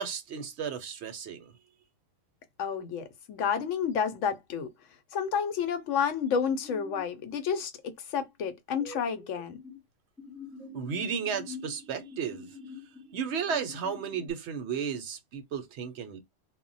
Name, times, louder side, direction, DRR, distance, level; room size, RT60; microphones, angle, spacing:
voice 1, 0.0-1.5 10.7-12.5 13.1-16.2, right 7 dB, 65° right, 0.8 m, -33 dB
voice 2, 2.6-4.7 5.1-9.6, left 7 dB, 80° left, 0.9 m, -30 dB
sound 1, 6.5-7.0 8.8-9.8 10.2-14.3, left 3 dB, 5° left, 0.5 m, -45 dB
2.2 x 2.1 x 3.8 m
omnidirectional pair, 1.3 m